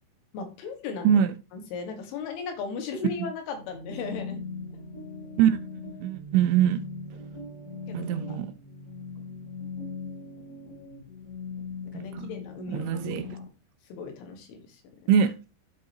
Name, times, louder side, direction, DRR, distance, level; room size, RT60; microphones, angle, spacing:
voice 1, 0.3-1.2 1.5-4.4 7.9-8.2 11.9-13.5 13.9-14.6, left 5 dB, 80° left, 4.1 m, -36 dB
sound 1, 3.5-13.5, left 4 dB, 35° left, 2.5 m, -40 dB
voice 2, 5.4-6.8 7.9-8.5 11.9-12.3 12.7-13.3 15.1-15.3, right 9 dB, 80° right, 2.9 m, -23 dB
12.5 x 4.9 x 2.8 m
omnidirectional pair, 5.6 m